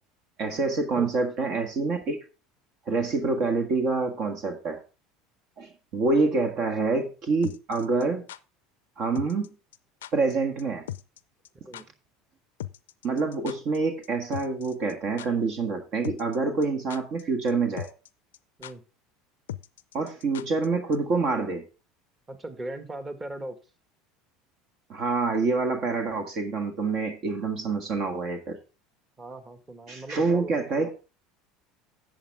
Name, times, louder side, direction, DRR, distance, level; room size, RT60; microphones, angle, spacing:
voice 1, 0.4-2.2 2.9-4.8 5.6-8.3 9.0-9.4 10.1-10.9 13.0-17.9 19.9-21.6 24.9-28.6 29.9-30.9, right 3 dB, 55° right, 1.6 m, -26 dB
sound 1, 7.4-8.4 9.2-9.5 9.7-9.8 10.0-10.3 10.6-10.7 10.9-11.2 11.4-11.5 11.7-11.8 12.6-13.8 14.0-14.1 14.3-14.9 15.2-15.3 16.0-16.4 16.6-17.2 17.5-17.6 17.8-18.1 18.3-18.4 18.6-18.7 19.5-20.7 20.9-21.0, left 12 dB, 80° left, 0.4 m, -38 dB
voice 2, 22.3-23.6 29.2-30.7, right 1 dB, 20° right, 1.7 m, -38 dB
11.5 x 8.0 x 3.5 m
hypercardioid pair, 80°, 0 cm